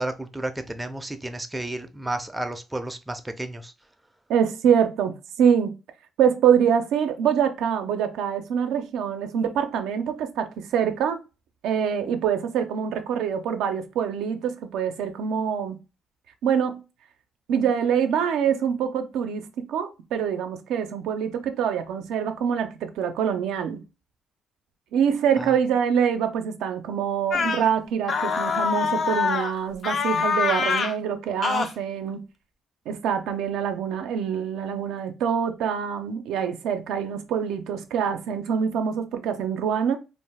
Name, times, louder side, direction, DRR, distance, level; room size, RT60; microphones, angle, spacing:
voice 1, 0.0-3.7 25.4-25.6, right 1 dB, 10° right, 0.4 m, -32 dB
voice 2, 4.3-5.7 6.2-11.2 11.6-15.8 16.4-16.8 17.5-23.8 24.9-32.2 32.9-40.0, right 8 dB, 90° right, 0.4 m, -25 dB
sound 1, 27.3-27.7 28.1-29.5 29.8-30.9 31.4-31.7, left 5 dB, 55° left, 0.4 m, -24 dB
2.5 x 2.2 x 3.3 m
cardioid pair, 90°, 0 cm